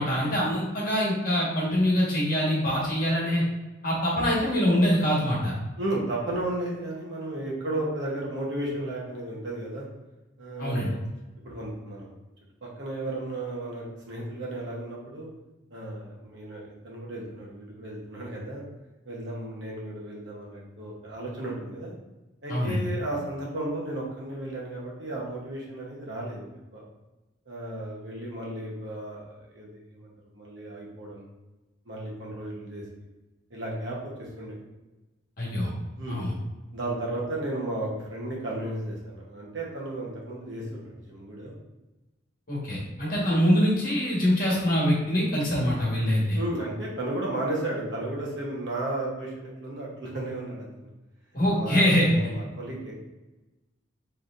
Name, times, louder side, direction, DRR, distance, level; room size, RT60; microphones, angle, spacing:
voice 1, 0.0-3.4 3.8-5.5 10.6-10.9 22.5-22.8 35.4-35.7 36.1-36.3 42.5-46.4 51.3-52.1, equal, 45° left, -6 dB, 1.4 m, -24 dB
voice 2, 5.8-9.9 10.4-11.0 11.4-12.1 12.6-15.3 15.7-18.6 19.0-22.0 22.4-26.5 26.7-26.8 27.5-31.3 31.9-33.1 33.5-34.6 36.0-36.2 36.7-41.5 46.3-50.9 51.5-51.8 52.1-52.9, right 1 dB, 60° right, -4 dB, 1.1 m, -34 dB
4.2 x 3.3 x 2.5 m, 1.1 s
head